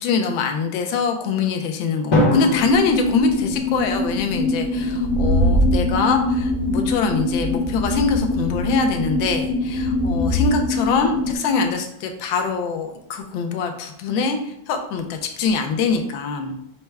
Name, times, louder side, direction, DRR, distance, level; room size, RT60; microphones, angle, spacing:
voice 1, 0.0-16.5, left 5 dB, 85° left, 4 dB, 1.4 m, -23 dB
Drum, 2.1-4.2, left 1 dB, 50° left, 1.3 m, -23 dB
sound 1, 2.5-11.4, left 1 dB, 65° left, 1.0 m, -24 dB
sound 2, 4.9-10.5, right 1 dB, 75° right, 1.6 m, -24 dB
5.7 x 2.1 x 3.3 m, 0.74 s
omnidirectional pair, 2.1 m